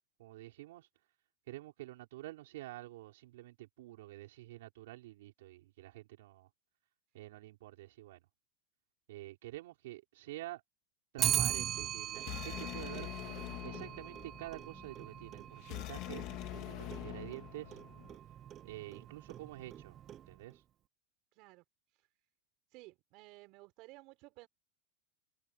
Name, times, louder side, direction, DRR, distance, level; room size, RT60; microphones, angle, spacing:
voice 1, 0.2-0.9 1.5-6.5 7.1-8.2 9.1-10.6 11.1-13.1 13.6-16.2 16.7-17.8 18.6-20.0 20.3-20.6, right 17 dB, 75° right, 5.1 m, -48 dB
Clock, 11.2-20.6, right 11 dB, 30° right, 0.7 m, -40 dB
sound 1, 12.1-18.2, left 18 dB, 45° left, 3.1 m, -45 dB
voice 2, 21.3-21.6 22.7-24.5, right 22 dB, 50° right, 6.5 m, -55 dB
supercardioid pair, 145°, 0 cm